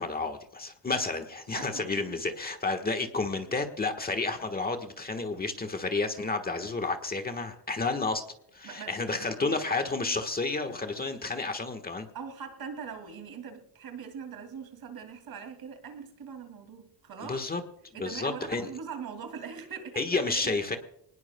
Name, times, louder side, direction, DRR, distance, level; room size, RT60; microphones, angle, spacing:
voice 1, 0.0-8.2 8.5-12.1 17.3-17.6 18.0-18.7 20.0-20.8, left 3 dB, 20° left, 6 dB, 1.3 m, -31 dB
voice 2, 1.5-2.2 8.6-9.6 12.1-17.4 17.9-20.6, right 6 dB, 55° right, 7 dB, 2.6 m, -42 dB
24.0 x 19.5 x 2.2 m, 0.73 s
cardioid pair, 150°, 43 cm